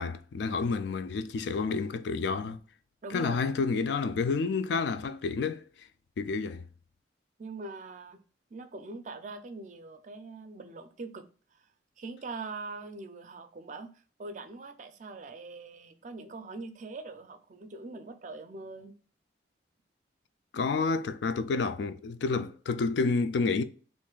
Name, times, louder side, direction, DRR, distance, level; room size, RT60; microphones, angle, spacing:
voice 1, 0.0-2.6 3.1-5.9 6.2-6.6 20.5-23.6, left 4 dB, 70° left, 0.3 m, -29 dB
voice 2, 3.0-3.5 7.4-8.2 8.5-11.2 12.0-13.9 14.2-18.9, right 3 dB, 45° right, 0.4 m, -42 dB
3.1 x 2.5 x 3.7 m
head